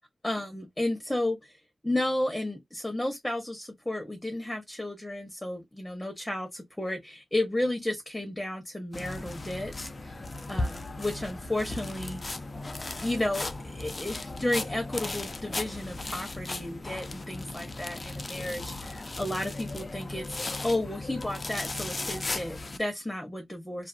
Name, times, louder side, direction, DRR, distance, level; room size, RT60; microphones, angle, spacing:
voice 1, 0.2-10.2 10.5-12.3 13.0-23.9, left 1 dB, 10° left, 0.7 m, -33 dB
sound 1, 8.9-22.8, left 2 dB, 35° left, 0.3 m, -36 dB
2.4 x 2.3 x 2.4 m
wide cardioid pair, 90°, 0 cm